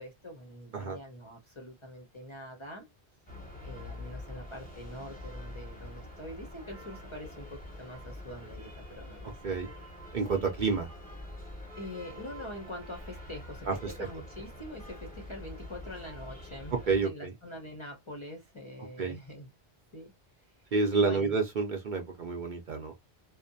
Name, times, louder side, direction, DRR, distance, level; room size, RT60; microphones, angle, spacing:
voice 1, 0.0-2.9 3.6-9.6 11.8-19.5 19.9-20.1 20.9-21.4, left 1 dB, 35° left, 0.5 m, -44 dB
sound 1, 3.3-17.0, left 1 dB, 10° left, 0.9 m, -45 dB
voice 2, 10.1-10.9 13.7-14.1 16.9-17.3 19.0-19.2 20.7-22.9, right 4 dB, 55° right, 0.6 m, -29 dB
2.6 x 2.1 x 2.6 m
omnidirectional pair, 1.1 m